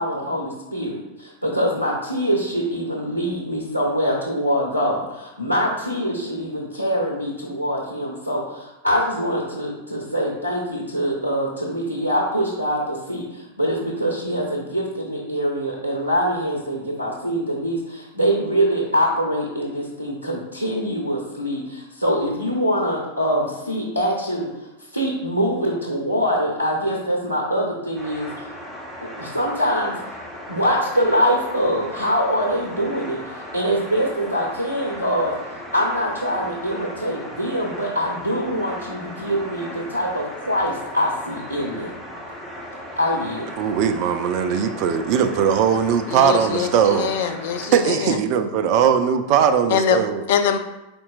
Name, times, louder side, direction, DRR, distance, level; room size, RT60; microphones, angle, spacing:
voice 1, 0.0-24.5 24.9-28.5 29.0-30.0 30.5-41.9 43.0-43.5, equal, 90° right, -2 dB, 0.7 m, -24 dB
sound 1, 27.9-47.7, equal, ahead, 1.3 m, -37 dB
voice 2, 43.6-47.1 47.7-50.2, right 8 dB, 45° right, 8 dB, 0.4 m, -19 dB
voice 3, 46.1-48.2 49.7-50.0 50.3-50.6, left 8 dB, 55° left, 7 dB, 0.4 m, -23 dB
5.1 x 4.2 x 2.4 m, 0.99 s
figure-of-eight pair, 90°, 0 cm